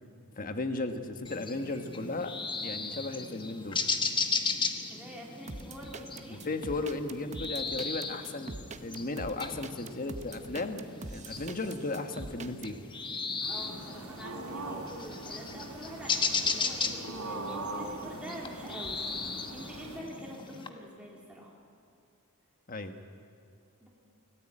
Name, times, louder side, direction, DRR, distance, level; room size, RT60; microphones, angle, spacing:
voice 1, 0.4-2.3 2.6-3.8 6.3-12.8 22.7-23.0, left 2 dB, 40° left, 7 dB, 1.5 m, -35 dB
sound 1, 1.2-20.7, left 4 dB, 20° left, 1.1 m, -36 dB
voice 2, 4.9-6.5 13.5-21.5 23.8-23.9, equal, 5° right, -4 dB, 3.0 m, -46 dB
sound 2, 5.5-12.7, right 2 dB, 30° right, 0.9 m, -43 dB
sound 3, 13.4-20.0, right 2 dB, 80° right, 4.1 m, -41 dB
24.5 x 17.0 x 9.0 m, 2.3 s
head